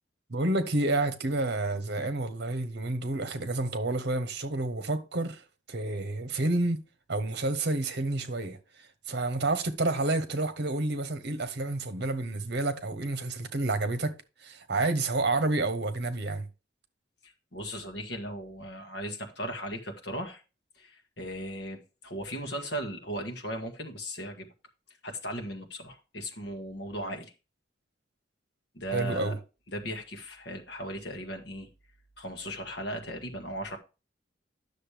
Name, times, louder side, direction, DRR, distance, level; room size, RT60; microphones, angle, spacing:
voice 1, 0.3-5.4 5.7-6.8 7.1-8.6 9.1-16.4 28.9-29.4, right 2 dB, 60° right, 1.0 m, -29 dB
voice 2, 17.2-20.4 20.8-24.5 25.0-27.3 28.7-29.3 29.7-31.7 32.2-33.8, equal, 65° left, 1.6 m, -37 dB
10.0 x 6.6 x 3.4 m
head